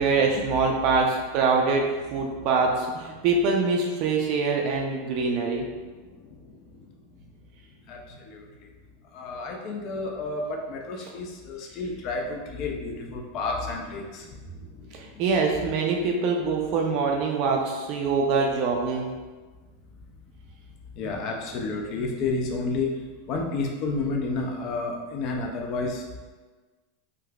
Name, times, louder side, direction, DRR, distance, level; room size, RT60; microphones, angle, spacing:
voice 1, 0.0-1.8 2.1-5.7 14.9-19.1, right 4 dB, 40° right, 1 dB, 0.4 m, -24 dB
voice 2, 6.1-6.4 7.9-8.7 9.1-15.2 21.0-22.9 23.3-26.0, left 3 dB, 35° left, 1 dB, 0.4 m, -31 dB
3.7 x 2.7 x 2.2 m, 1.3 s
supercardioid pair, 165°, 0 cm